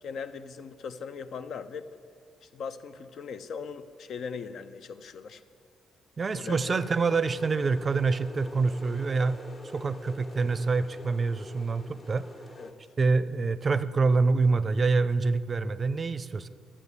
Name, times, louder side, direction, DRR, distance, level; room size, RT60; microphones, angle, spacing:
voice 1, 0.0-1.9 2.4-5.4 6.3-6.8 12.6-12.7, left 5 dB, 65° left, 11 dB, 0.6 m, -39 dB
voice 2, 6.2-9.4 9.7-12.2 13.0-16.5, right 4 dB, 35° right, 15 dB, 0.5 m, -26 dB
sound 1, 6.5-12.7, left 2 dB, 35° left, 1.4 m, -46 dB
11.0 x 7.6 x 8.1 m, 2.1 s
cardioid pair, 90°, 0 cm